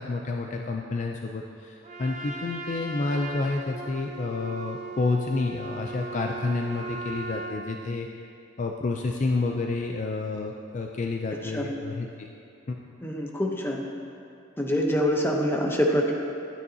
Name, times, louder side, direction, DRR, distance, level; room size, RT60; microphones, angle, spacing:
voice 1, 0.0-8.1 8.6-12.3 12.7-12.8, left 3 dB, 40° left, 2 dB, 0.4 m, -29 dB
Trumpet, 1.8-7.6, right 3 dB, 35° right, 0.7 m, -38 dB
voice 2, 13.0-13.8 14.6-16.1, equal, 10° left, 0 dB, 0.8 m, -25 dB
12.0 x 9.3 x 2.8 m, 2.5 s
head